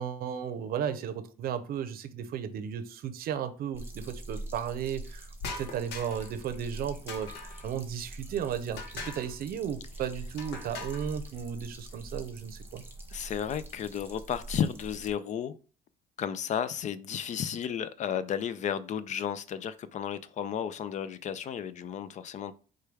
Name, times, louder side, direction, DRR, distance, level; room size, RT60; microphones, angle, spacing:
voice 1, 0.0-5.3 5.6-12.8, right 8 dB, 60° right, 0.6 m, -35 dB
sound 1, 3.7-15.1, right 1 dB, 10° right, 1.0 m, -44 dB
sound 2, 5.4-6.4 7.1-7.7 8.8-9.4 10.4-11.1, left 4 dB, 75° left, 0.8 m, -41 dB
voice 2, 13.1-15.5 16.2-22.5, left 8 dB, 45° left, 0.4 m, -33 dB
4.9 x 2.3 x 4.6 m
cardioid pair, 110°, 17 cm